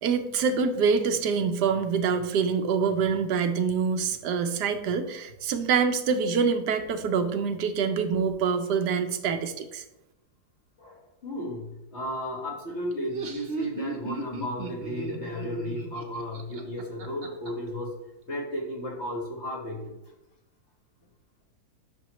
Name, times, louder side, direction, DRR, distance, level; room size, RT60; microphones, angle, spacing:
voice 1, 0.0-9.8, right 6 dB, 85° right, 8 dB, 1.3 m, -25 dB
voice 2, 10.8-17.9 18.3-19.9, equal, 45° left, -1 dB, 1.7 m, -34 dB
Laughter, 12.9-17.5, right 2 dB, 40° right, 1.0 m, -36 dB
10.5 x 6.3 x 3.1 m, 0.94 s
omnidirectional pair, 1.7 m